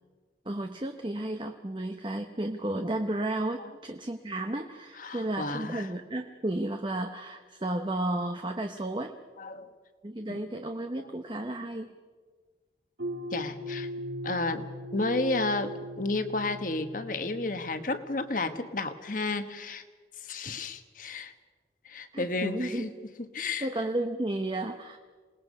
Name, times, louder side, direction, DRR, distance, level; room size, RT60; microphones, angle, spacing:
voice 1, 0.5-9.2 10.0-11.9 22.1-22.9 23.6-25.0, right 1 dB, 25° right, 5 dB, 0.8 m, -33 dB
voice 2, 5.0-5.9 9.4-9.7 10.3-10.4 13.3-13.9 14.2-14.7 14.9-19.8 20.2-21.3 21.8-22.9 23.2-23.7, left 2 dB, 45° left, 8 dB, 1.3 m, -32 dB
sound 1, 13.0-18.2, equal, 85° right, 2.9 m, -39 dB
27.5 x 19.5 x 5.4 m, 1.5 s
head